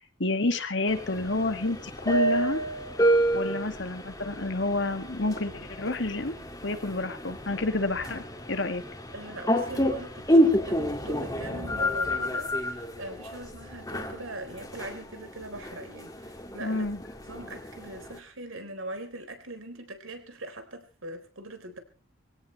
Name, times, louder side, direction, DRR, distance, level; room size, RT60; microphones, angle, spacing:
voice 1, 0.0-2.6 3.3-6.4 6.6-8.8 16.6-17.0, left 2 dB, 65° left, 8 dB, 2.0 m, -29 dB
sound 1, 0.9-18.2, equal, 15° left, 2.2 m, -29 dB
voice 2, 9.1-16.9 17.3-21.8, right 1 dB, 85° right, 6 dB, 4.0 m, -41 dB
23.0 x 17.0 x 3.3 m, 0.35 s
head